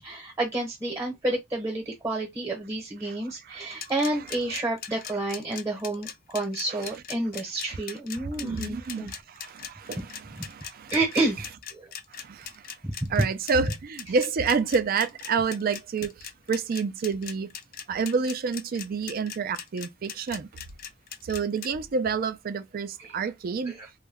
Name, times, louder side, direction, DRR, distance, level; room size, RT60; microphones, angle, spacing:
voice 1, 0.0-9.1 10.4-10.5 10.9-11.4 11.7-11.9 12.8-13.1 23.0-23.1 23.7-23.9, right 2 dB, 15° right, 0.9 m, -30 dB
sound 1, 3.8-21.7, left 8 dB, 50° left, 0.4 m, -39 dB
voice 2, 8.1-10.9 12.1-12.6 13.1-17.5 17.9-20.5 21.2-23.8, right 5 dB, 50° right, 0.4 m, -29 dB
2.2 x 2.2 x 3.4 m
head